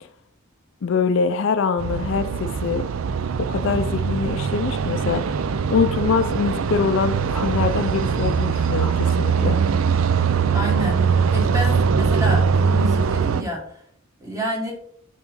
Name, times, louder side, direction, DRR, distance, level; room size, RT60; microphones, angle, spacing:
voice 1, 0.8-2.8 3.4-5.4 5.7-9.6, left 5 dB, 60° left, 11 dB, 0.4 m, -23 dB
sound 1, 1.8-13.4, right 6 dB, 75° right, 0.4 m, -21 dB
sound 2, 7.3-9.3 10.3-10.5, left 1 dB, 5° left, 0.8 m, -41 dB
voice 2, 10.5-13.8 14.2-14.7, equal, 15° right, -1 dB, 1.7 m, -29 dB
8.9 x 3.7 x 3.8 m, 0.65 s
head